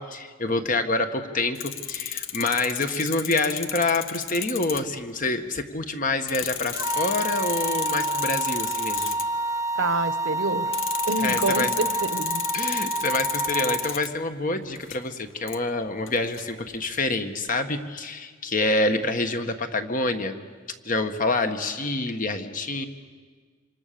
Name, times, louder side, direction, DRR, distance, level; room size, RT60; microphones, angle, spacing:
voice 1, 0.0-9.2 11.2-11.7 12.5-20.4 20.8-22.9, left 2 dB, 45° left, 7 dB, 1.6 m, -27 dB
sound 1, 1.6-5.0 5.7-5.8 6.3-9.2 10.7-14.1 14.6-15.1 15.5-15.6 16.1-17.0, left 10 dB, 80° left, 1.1 m, -33 dB
sound 2, 6.7-13.9, right 2 dB, 15° right, 0.9 m, -28 dB
voice 2, 9.8-10.7 11.0-12.4, right 2 dB, 75° right, 12 dB, 1.1 m, -27 dB
26.5 x 25.5 x 7.0 m, 1.5 s
head